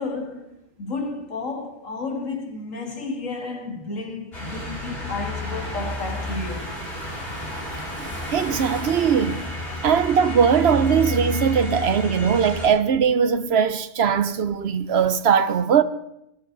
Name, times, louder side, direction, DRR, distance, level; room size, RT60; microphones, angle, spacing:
voice 1, 0.0-7.0, left 3 dB, 85° left, 2.4 m, -32 dB
sound 1, 4.3-12.7, left 1 dB, 50° left, 7.6 m, -31 dB
Waves surf, 5.8-11.0, equal, 10° left, 2.7 m, -43 dB
voice 2, 8.3-9.4 9.8-15.8, right 7 dB, 60° right, 0.9 m, -20 dB
20.5 x 13.0 x 3.9 m
omnidirectional pair, 1.3 m